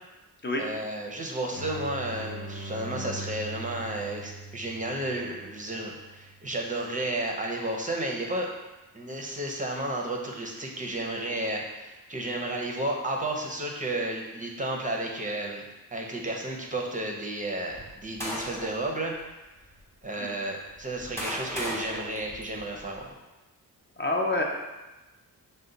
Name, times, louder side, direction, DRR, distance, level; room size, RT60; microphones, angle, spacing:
voice 1, 0.6-8.5 8.9-15.6 15.9-19.1 20.0-23.1, right 1 dB, 20° right, 0 dB, 0.5 m, -32 dB
sound 1, 1.5-7.0, right 3 dB, 70° left, 0.9 m, -41 dB
sound 2, 17.7-18.9 19.6-19.7 20.6-23.0, left 1 dB, 5° left, 0.8 m, -37 dB
voice 2, 24.0-24.4, left 2 dB, 30° left, -1 dB, 0.4 m, -27 dB
5.2 x 2.1 x 3.8 m, 1.1 s
wide cardioid pair, 150°, 36 cm